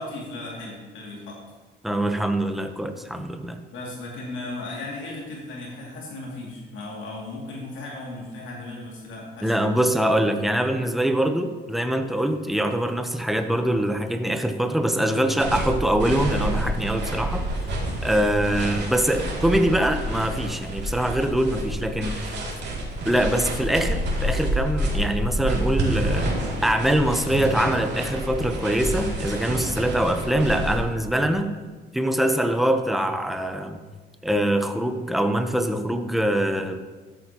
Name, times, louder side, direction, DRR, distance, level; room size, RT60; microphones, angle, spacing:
voice 1, 0.0-1.4 3.7-9.5 21.8-22.2, left 2 dB, 80° left, -3 dB, 2.5 m, -36 dB
voice 2, 1.8-3.6 9.4-17.5 18.0-22.1 23.0-26.3 26.6-31.5 31.9-33.8 34.2-36.9, right 1 dB, ahead, 6 dB, 0.9 m, -23 dB
sound 1, 15.4-30.8, right 1 dB, 60° right, 2.6 m, -28 dB
13.0 x 8.5 x 3.0 m, 1.3 s
cardioid pair, 90°, 20 cm